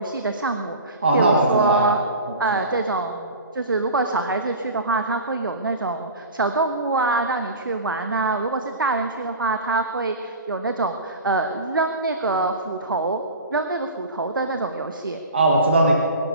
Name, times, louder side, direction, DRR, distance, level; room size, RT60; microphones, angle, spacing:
voice 1, 0.0-2.0 2.4-13.2 13.5-15.2, right 3 dB, 80° right, 6 dB, 1.2 m, -25 dB
voice 2, 1.0-1.9 2.5-2.7 15.3-15.9, right 1 dB, 30° right, 0 dB, 1.3 m, -18 dB
22.0 x 11.0 x 5.3 m, 2.8 s
hypercardioid pair, 180°, 11 cm